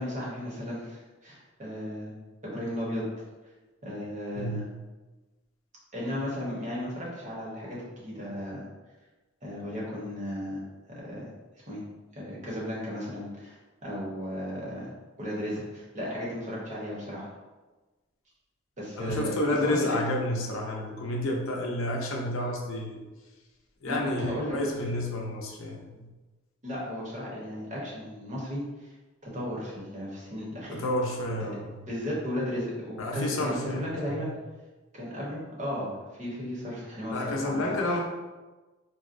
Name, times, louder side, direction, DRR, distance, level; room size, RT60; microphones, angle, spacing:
voice 1, 0.0-2.1 2.4-3.0 3.8-4.6 5.9-8.6 9.4-10.6 11.0-11.3 11.7-11.8 12.1-14.9 15.2-17.3 18.8-19.3 19.6-19.9 23.9-24.5 26.6-28.9 29.2-30.8 31.9-34.3 34.9-37.6, equal, 35° right, -5 dB, 0.9 m, -35 dB
voice 2, 19.0-23.1 23.8-26.1 30.7-31.8 33.0-34.3 37.1-38.0, left 1 dB, 80° left, 0 dB, 0.6 m, -30 dB
4.0 x 2.0 x 2.5 m, 1.2 s
head